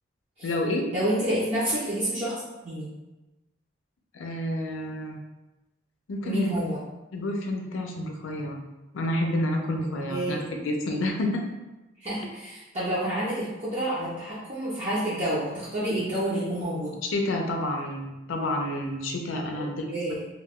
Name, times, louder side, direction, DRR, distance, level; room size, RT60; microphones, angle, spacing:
voice 1, 0.4-0.9 4.1-5.2 6.1-6.6 7.1-8.6 8.9-11.5 17.1-20.1, left 1 dB, 85° left, 2 dB, 0.5 m, -29 dB
voice 2, 0.9-2.3 2.6-2.9 6.2-6.8 10.1-10.4 12.0-16.9 19.9-20.2, right 1 dB, 35° right, -11 dB, 0.6 m, -28 dB
2.3 x 2.2 x 3.5 m, 1.1 s
head